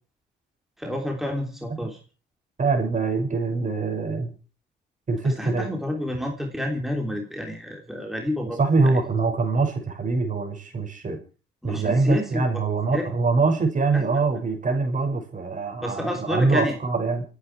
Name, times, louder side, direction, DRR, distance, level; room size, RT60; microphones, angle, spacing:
voice 1, 0.8-2.0 5.2-9.0 11.6-12.6 12.9-13.1 13.9-14.1 15.8-16.8, left 1 dB, ahead, 1 dB, 3.3 m, -29 dB
voice 2, 2.6-4.3 5.1-5.7 8.6-11.2 11.6-17.2, right 3 dB, 40° right, 5 dB, 5.9 m, -24 dB
29.0 x 9.7 x 4.7 m, 0.37 s
cardioid pair, 90°, 20 cm